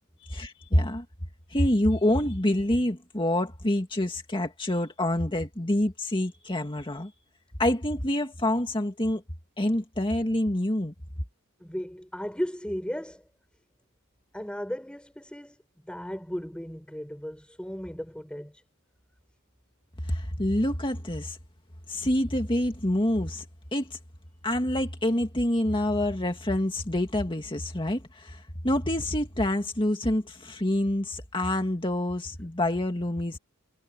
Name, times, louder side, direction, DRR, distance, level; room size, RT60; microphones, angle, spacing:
voice 1, 0.3-1.0 1.5-7.1 7.6-9.2 9.6-10.9 20.1-21.4 21.9-23.4 23.7-24.0 24.4-33.4, left 1 dB, 20° left, 2.1 m, -27 dB
voice 2, 11.6-13.2 14.3-15.6 15.8-18.6, equal, 5° left, 5.2 m, -35 dB
head